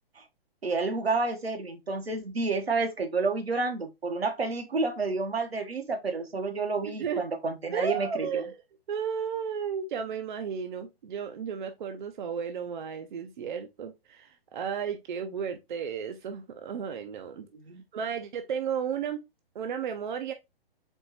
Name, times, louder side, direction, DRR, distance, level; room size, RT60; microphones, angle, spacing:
voice 1, 0.6-8.4 17.7-17.8, right 3 dB, 85° right, 1.0 m, -30 dB
voice 2, 6.8-7.2 7.7-8.5 8.9-17.5 17.9-19.2 19.5-20.3, right 7 dB, 55° right, 0.6 m, -33 dB
4.4 x 3.0 x 2.8 m
figure-of-eight pair, 125°, 30 cm